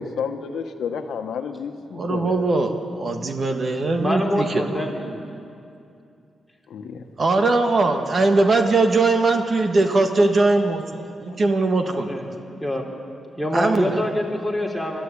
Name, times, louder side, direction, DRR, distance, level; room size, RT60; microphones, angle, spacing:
voice 1, 0.0-2.5 6.7-7.0, left 6 dB, 80° left, 6 dB, 1.2 m, -30 dB
voice 2, 1.9-4.8 7.2-12.2 13.5-14.0, right 3 dB, 45° right, 5 dB, 1.6 m, -20 dB
voice 3, 3.8-5.2 11.8-12.3 12.6-12.8 13.4-15.0, left 1 dB, 5° right, 0 dB, 3.4 m, -26 dB
22.0 x 13.0 x 10.0 m, 2.5 s
cardioid pair, 95°, 0 cm